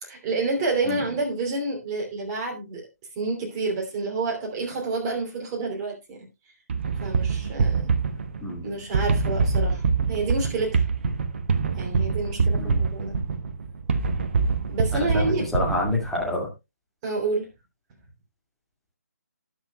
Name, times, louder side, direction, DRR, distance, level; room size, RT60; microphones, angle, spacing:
voice 1, 0.0-2.9 3.1-6.2 7.0-7.9 8.6-10.8 11.8-13.1 14.7-15.4 17.0-17.5, right 3 dB, 20° right, 0 dB, 2.9 m, -29 dB
sound 1, 6.7-16.3, right 4 dB, 45° right, 1.0 m, -25 dB
voice 2, 14.9-15.3 15.5-16.5, left 1 dB, ahead, -3 dB, 2.1 m, -27 dB
19.0 x 6.4 x 2.2 m, 0.24 s
figure-of-eight pair, 145°, 9 cm